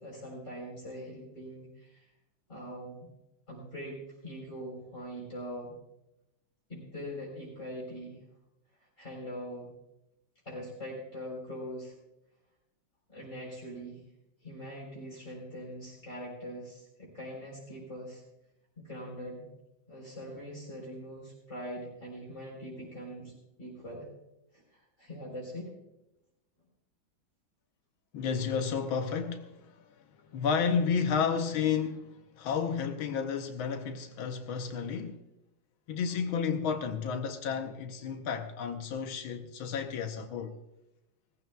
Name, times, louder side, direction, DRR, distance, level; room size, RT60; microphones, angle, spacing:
voice 1, 0.0-2.0 2.5-3.1 3.5-5.7 6.7-8.2 9.0-9.7 10.4-11.9 13.1-14.0 14.4-18.2 18.8-19.5 19.9-24.1 24.5-24.6 25.0-25.7, equal, 35° left, 4.5 m, -42 dB
voice 2, 28.1-29.8 30.3-35.2 35.9-40.5, left 6 dB, 85° left, 1.7 m, -31 dB
19.0 x 15.0 x 2.3 m
omnidirectional pair, 2.2 m